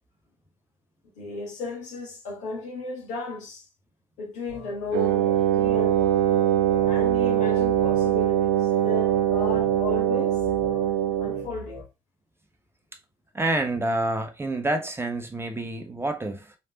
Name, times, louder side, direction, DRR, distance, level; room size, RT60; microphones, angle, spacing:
voice 1, 1.2-3.7 4.2-6.4 6.8-10.7 11.2-11.8, left 3 dB, 65° left, 1.2 m, -35 dB
sound 1, 4.5-11.8, left 2 dB, 45° left, 1.2 m, -43 dB
Wind instrument woodwind instrument, 4.9-11.5, right 11 dB, 65° right, 0.4 m, -22 dB
voice 2, 13.3-16.5, right 2 dB, 15° right, 0.8 m, -28 dB
4.1 x 3.3 x 2.8 m
figure-of-eight pair, 45°, 14 cm